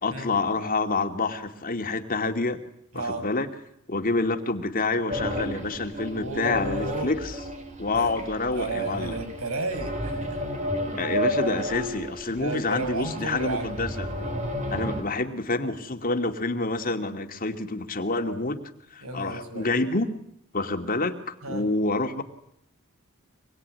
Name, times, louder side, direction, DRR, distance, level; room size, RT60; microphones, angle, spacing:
voice 1, 0.0-2.6 2.9-3.5 3.9-7.3 7.8-9.2 10.9-14.1 14.7-18.6 18.9-20.1 20.5-22.2, left 3 dB, 40° left, 6 dB, 2.5 m, -27 dB
voice 2, 2.9-3.3 6.1-7.1 7.9-8.2 8.5-10.4 11.1-11.2 12.3-13.8 19.0-19.7 21.4-21.6, right 2 dB, 85° right, 7 dB, 7.3 m, -33 dB
sound 1, 5.1-15.0, equal, 35° right, 5.6 m, -32 dB
26.0 x 22.0 x 9.7 m, 0.73 s
head